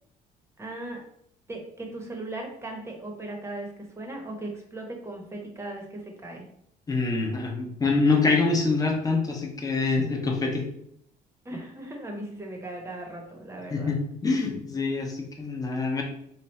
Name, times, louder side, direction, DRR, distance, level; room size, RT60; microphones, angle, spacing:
voice 1, 0.6-1.0 1.5-3.7 4.0-6.5 11.4-13.9, right 2 dB, 15° right, 1 dB, 0.9 m, -37 dB
voice 2, 6.9-10.6 13.7-16.0, left 3 dB, 20° left, 1 dB, 0.8 m, -25 dB
3.4 x 2.3 x 4.1 m, 0.72 s
cardioid pair, 110°, 17 cm